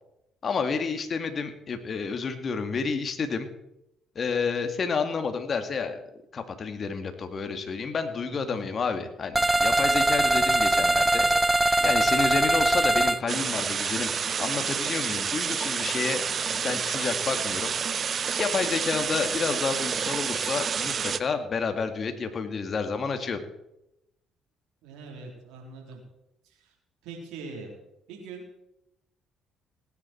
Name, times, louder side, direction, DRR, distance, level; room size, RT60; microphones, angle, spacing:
voice 1, 0.4-3.5 4.2-11.3 11.8-14.1 14.4-16.2 16.5-17.7 18.4-23.4, left 5 dB, 45° left, 7 dB, 2.1 m, -30 dB
voice 2, 8.2-8.7 24.8-26.0 26.4-26.7 27.0-27.7 28.1-28.4, right 4 dB, 80° right, 1 dB, 3.9 m, -42 dB
sound 1, 9.3-13.2, right 2 dB, 15° right, 0.7 m, -22 dB
sound 2, 13.3-21.2, right 7 dB, 50° right, 0.7 m, -29 dB
18.5 x 10.0 x 4.5 m, 0.85 s
supercardioid pair, 60°, 0 cm